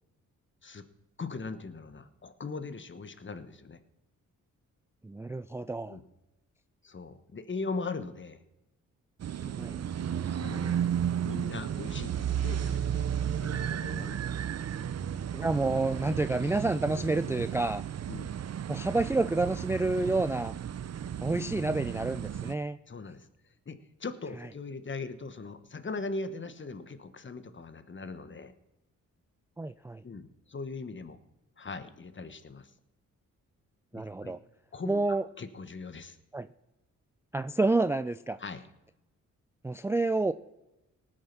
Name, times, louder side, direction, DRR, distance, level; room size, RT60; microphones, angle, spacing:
voice 1, 1.2-3.8 5.9-6.0 6.8-8.4 9.4-9.6 10.4-10.8 11.2-14.2 18.1-18.4 22.9-23.3 23.6-28.5 30.0-31.2 31.6-32.7 33.9-34.4 34.7-35.0 35.4-36.2 38.4-38.6, left 3 dB, 35° left, 11 dB, 1.2 m, -40 dB
voice 2, 5.0-6.0 9.6-9.8 15.3-17.8 18.7-20.5 21.2-22.8 29.6-30.0 33.9-34.4 34.9-35.2 36.3-36.5 37.3-38.4 39.6-40.3, right 2 dB, 10° right, 12 dB, 0.3 m, -29 dB
sound 1, 9.2-22.5, right 9 dB, 50° right, 0.6 m, -33 dB
18.5 x 6.5 x 5.9 m, 0.99 s
cardioid pair, 65°, 33 cm